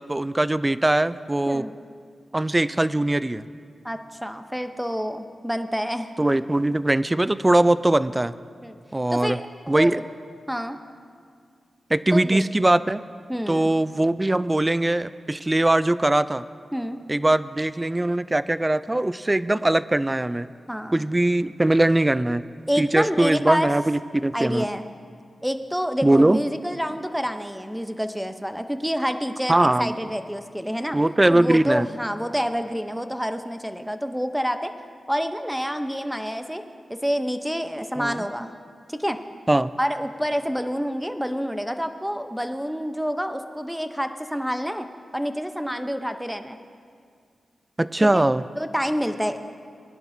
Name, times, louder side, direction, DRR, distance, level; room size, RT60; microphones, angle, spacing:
voice 1, 0.0-1.7 2.3-3.4 6.2-8.3 8.9-9.4 9.7-10.0 11.9-13.0 13.5-16.4 17.1-20.5 20.9-22.4 22.8-24.7 26.0-26.4 29.5-29.9 30.9-31.9 38.0-38.2 39.5-39.7 47.8-48.4, right 1 dB, 20° right, 15 dB, 0.4 m, -21 dB
voice 2, 3.8-6.1 8.6-8.8 9.1-10.0 10.5-10.8 12.1-12.4 13.3-13.7 16.7-17.0 20.7-21.0 22.7-23.7 24.3-24.8 25.4-31.0 31.3-34.7 35.1-36.6 36.9-38.5 38.9-39.2 39.8-44.9 45.1-46.6 48.1-48.2 48.6-49.4, equal, 5° right, 8 dB, 0.8 m, -28 dB
21.0 x 11.0 x 2.7 m, 2.2 s
cardioid pair, 55°, 0 cm